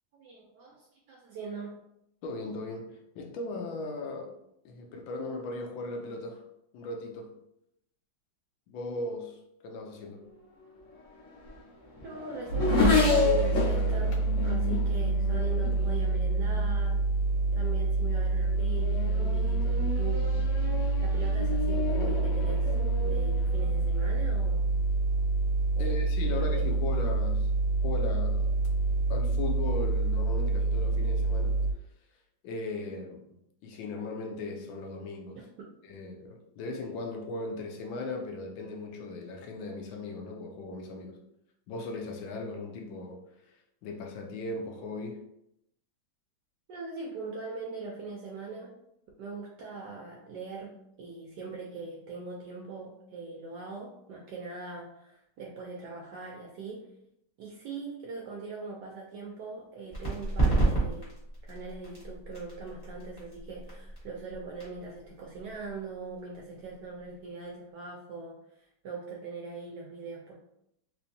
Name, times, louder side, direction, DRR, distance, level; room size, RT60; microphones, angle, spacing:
voice 1, 0.1-1.8 12.0-14.2 14.4-17.0 17.5-20.3 21.0-22.7 23.0-24.7 25.8-26.0 26.3-26.7 35.4-35.7 46.7-48.8 49.2-50.7 51.0-56.9 57.4-61.2 61.4-70.4, right 4 dB, 75° right, 1.0 m, -41 dB
voice 2, 2.2-4.3 4.6-6.4 6.7-7.4 8.7-9.4 9.6-10.3 25.8-27.5 27.8-28.5 29.1-31.6 32.4-33.2 33.6-35.4 35.8-41.2 41.7-43.2 43.8-45.2, left 2 dB, 75° left, 1.3 m, -37 dB
Race car auto racing / Accelerating revving vroom, 10.9-16.8 17.6-17.9 18.4-24.3, left 4 dB, 50° left, 1.0 m, -31 dB
sound 1, 12.5-31.7, right 3 dB, 90° left, 1.5 m, -27 dB
sound 2, 59.9-67.2, right 2 dB, 25° left, 1.1 m, -32 dB
3.4 x 3.1 x 2.6 m
omnidirectional pair, 2.3 m